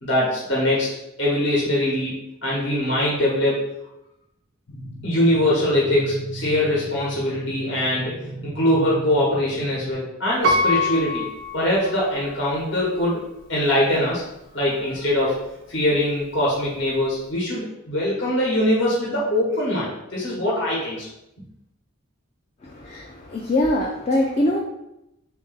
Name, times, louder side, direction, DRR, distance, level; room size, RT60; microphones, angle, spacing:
voice 1, 0.0-0.9 1.2-2.1 2.4-3.6 5.0-11.3 11.5-13.2 13.5-14.2 14.5-15.4 15.7-21.1, left 1 dB, 55° left, -5 dB, 0.9 m, -22 dB
sound 1, 4.7-9.9, right 2 dB, 90° left, 1.1 m, -36 dB
Piano, 10.4-12.4 13.0-13.1, left 2 dB, 55° right, 0.4 m, -24 dB
voice 2, 22.6-24.6, left 1 dB, 30° left, 0 dB, 0.3 m, -23 dB
3.4 x 2.6 x 3.8 m, 0.87 s
head